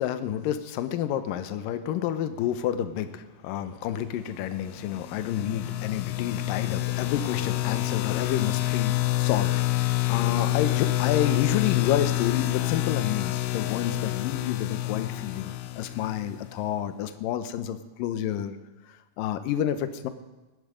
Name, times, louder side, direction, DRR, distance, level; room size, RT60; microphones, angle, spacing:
voice 1, 0.0-9.6 10.1-18.6 19.2-20.1, left 10 dB, 75° left, 10 dB, 2.2 m, -29 dB
sound 1, 4.8-16.5, left 17 dB, 90° left, 2.0 m, -27 dB
18.5 x 14.5 x 5.1 m, 1.1 s
omnidirectional pair, 4.8 m